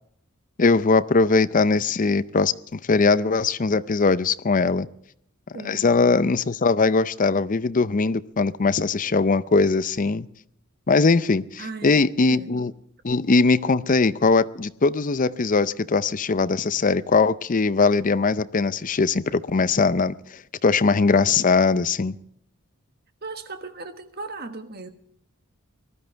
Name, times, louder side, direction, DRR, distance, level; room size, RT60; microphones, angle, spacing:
voice 1, 0.6-4.9 5.6-10.3 10.9-12.7 13.0-22.2, left 4 dB, 40° left, 15 dB, 0.5 m, -21 dB
voice 2, 5.5-5.9 11.6-12.7 23.2-24.9, right 3 dB, 50° right, 8 dB, 1.4 m, -37 dB
19.0 x 13.5 x 4.5 m, 0.71 s
head